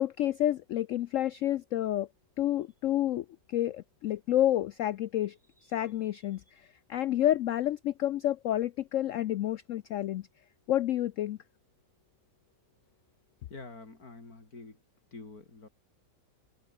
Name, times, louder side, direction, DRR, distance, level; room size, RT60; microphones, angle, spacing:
voice 1, 0.0-2.1 2.4-5.3 5.7-6.4 6.9-10.2 10.7-11.4, left 12 dB, 80° left, 0.7 m, -29 dB
voice 2, 13.5-14.8 15.1-15.7, left 3 dB, 55° left, 4.6 m, -47 dB
omnidirectional pair, 1.9 m